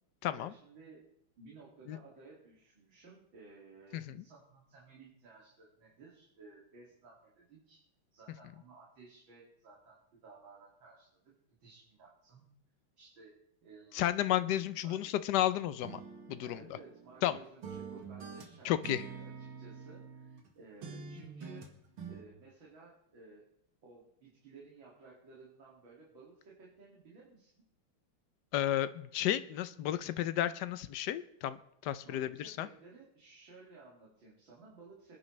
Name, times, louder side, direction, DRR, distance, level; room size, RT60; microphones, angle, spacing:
voice 1, 0.3-1.0 1.4-7.8 8.1-12.4 13.0-13.3 13.6-14.0 14.8-15.1 16.4-21.7 22.1-23.4 23.8-27.5 32.0-35.2, right 3 dB, 70° right, -5 dB, 3.2 m, -56 dB
voice 2, 13.9-16.0 16.3-16.6 17.2-17.4 18.6-19.0 28.5-32.7, left 12 dB, 70° left, 14 dB, 1.1 m, -32 dB
sound 1, 15.8-17.3 17.6-20.5 20.8-22.2, right 5 dB, 90° right, 2.5 m, -46 dB
26.0 x 10.0 x 3.2 m, 0.71 s
omnidirectional pair, 2.2 m